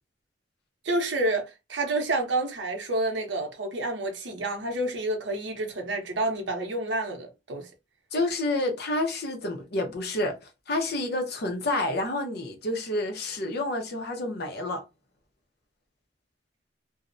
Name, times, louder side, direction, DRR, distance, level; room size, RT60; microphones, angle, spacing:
voice 1, 0.8-7.7, right 2 dB, 70° right, 0.7 m, -29 dB
voice 2, 8.1-14.8, left 2 dB, 60° left, 0.6 m, -29 dB
2.4 x 2.0 x 2.5 m
head